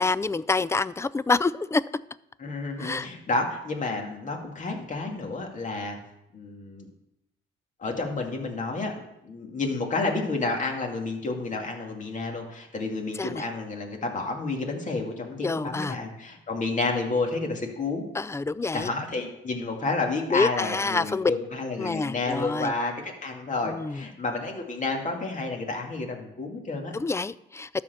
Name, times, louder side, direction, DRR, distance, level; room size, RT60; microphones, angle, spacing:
voice 1, 0.0-1.8 2.8-3.1 13.2-13.4 15.4-16.0 18.1-18.9 20.3-21.3 21.8-22.7 23.6-24.0 26.9-27.7, left 3 dB, 15° left, 0.3 m, -27 dB
voice 2, 2.4-6.0 6.3-6.9 7.8-8.9 9.2-18.0 18.7-26.9, left 3 dB, 40° left, 2.3 m, -30 dB
12.0 x 4.4 x 6.9 m
cardioid pair, 90°, 20 cm